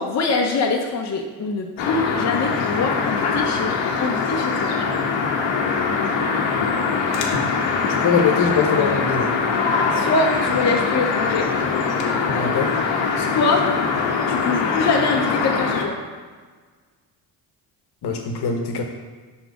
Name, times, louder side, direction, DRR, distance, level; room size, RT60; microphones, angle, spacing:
voice 1, 0.0-3.7 4.0-4.7 9.9-11.5 13.2-13.6 14.3-16.0, left 3 dB, 40° left, 1 dB, 0.7 m, -23 dB
sound 1, 1.8-15.8, left 5 dB, 85° left, 0.9 m, -22 dB
voice 2, 8.0-9.3 12.3-12.7 18.0-18.8, left 5 dB, 60° left, 3 dB, 1.0 m, -22 dB
6.1 x 4.0 x 4.7 m, 1.5 s
cardioid pair, 80°, 44 cm